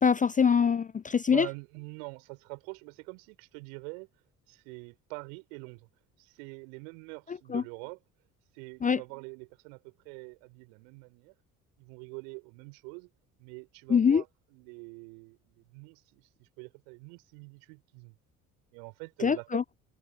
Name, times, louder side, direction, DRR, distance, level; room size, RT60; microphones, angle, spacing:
voice 1, 0.0-1.5 7.5-7.6 8.8-9.0 13.9-14.2 19.2-19.6, left 6 dB, 20° left, 0.6 m, -24 dB
voice 2, 1.3-4.1 4.5-5.9 6.2-8.0 8.5-11.3 11.8-13.1 13.4-18.1 18.7-19.5, right 38 dB, 65° right, 4.4 m, -45 dB
figure-of-eight pair, 50°, 42 cm